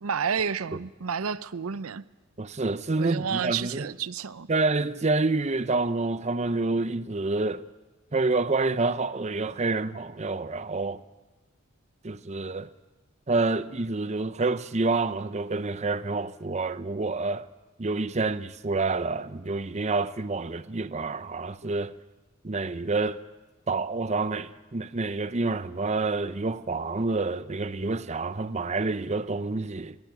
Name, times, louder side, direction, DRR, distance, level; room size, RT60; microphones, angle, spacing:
voice 1, 0.0-2.0 3.0-4.5, right 6 dB, 85° right, 0.6 m, -30 dB
voice 2, 2.4-3.9 4.5-7.7 8.1-11.0 12.0-12.7 13.3-17.5 17.8-21.9 22.4-23.2 23.7-30.0, right 3 dB, 30° right, 0.6 m, -28 dB
22.0 x 16.5 x 9.2 m
head